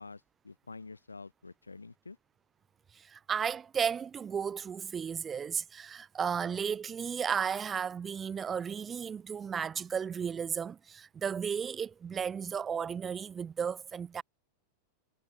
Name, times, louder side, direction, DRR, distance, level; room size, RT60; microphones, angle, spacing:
voice 1, 0.0-2.2, left 3 dB, 80° left, 0.5 m, -48 dB
voice 2, 2.9-14.2, right 7 dB, 20° right, 0.7 m, -34 dB
figure-of-eight pair, 90°, 0 cm